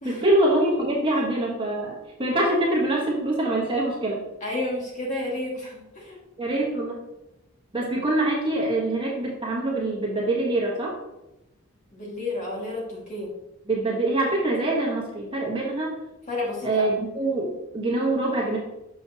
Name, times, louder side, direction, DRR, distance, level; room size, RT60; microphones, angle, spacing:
voice 1, 0.0-4.2 6.4-7.0 7.7-10.9 13.7-15.9 16.6-18.6, right 2 dB, 25° right, -3 dB, 1.3 m, -24 dB
voice 2, 4.4-6.2 11.9-13.3 16.3-16.9, left 2 dB, 35° left, -4 dB, 2.0 m, -31 dB
6.6 x 6.2 x 2.9 m, 0.93 s
head